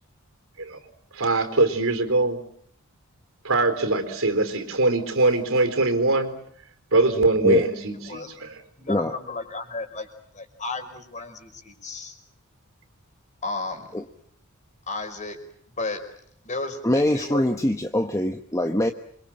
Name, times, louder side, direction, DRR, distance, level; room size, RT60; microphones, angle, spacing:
voice 1, 1.1-2.4 3.4-6.3 6.9-8.6, right 2 dB, 65° right, 8 dB, 4.3 m, -22 dB
voice 2, 8.8-10.1 10.3-12.1 13.4-14.0 14.9-15.4 15.8-16.0 16.4-17.5, left 3 dB, 35° left, 6 dB, 5.2 m, -33 dB
voice 3, 16.8-18.9, left 1 dB, 15° left, 6 dB, 1.1 m, -23 dB
28.0 x 25.0 x 7.5 m, 0.68 s
head